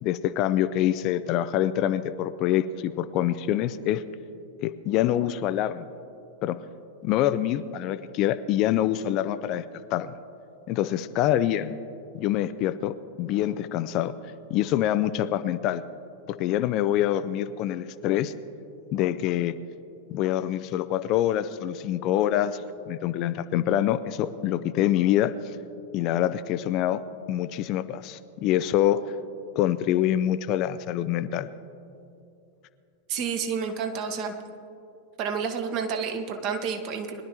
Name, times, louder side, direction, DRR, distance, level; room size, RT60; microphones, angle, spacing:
voice 1, 0.0-4.0 4.6-5.8 6.4-6.6 7.0-9.6 9.9-10.1 10.7-11.7 12.1-14.1 14.5-15.8 16.3-18.3 18.9-19.5 20.1-22.6 22.9-25.3 25.9-27.0 27.3-29.0 29.6-31.5, left 12 dB, 40° left, 13 dB, 0.4 m, -25 dB
voice 2, 33.1-34.3 35.2-37.2, right 6 dB, 40° right, 5 dB, 1.2 m, -30 dB
22.0 x 11.5 x 3.0 m, 2.6 s
figure-of-eight pair, 90°, 0 cm